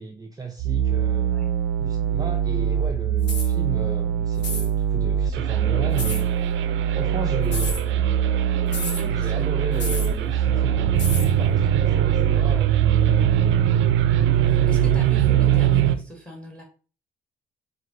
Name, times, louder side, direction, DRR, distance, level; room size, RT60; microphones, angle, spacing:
voice 1, 0.0-1.4 1.8-6.3 6.9-8.2 9.1-12.8, right 4 dB, 20° right, 0.5 m, -34 dB
sound 1, 0.6-16.0, right 9 dB, 75° right, 0.4 m, -21 dB
sound 2, 3.2-3.5 4.4-4.7 6.0-6.2 7.4-7.8 8.7-9.0 9.8-10.1 11.0-11.3, left 3 dB, 60° left, 1.2 m, -31 dB
voice 2, 8.7-9.8 14.3-16.6, equal, 5° left, 1.5 m, -40 dB
4.5 x 2.4 x 3.8 m
cardioid pair, 90°, 20 cm